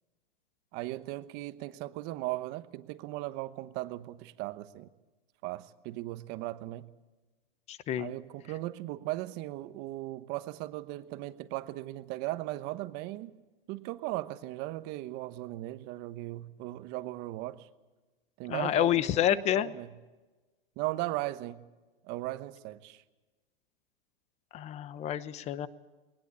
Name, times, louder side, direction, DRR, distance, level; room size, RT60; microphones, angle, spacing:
voice 1, 0.7-4.9 5.4-6.9 8.0-13.4 13.7-17.7 18.4-19.9 20.8-21.6 22.0-23.0, right 17 dB, 35° right, 12 dB, 1.1 m, -37 dB
voice 2, 7.7-8.1 18.5-19.7 24.5-25.7, left 11 dB, 20° left, 16 dB, 0.9 m, -28 dB
20.5 x 19.5 x 8.2 m, 1.2 s
hypercardioid pair, 145°, 29 cm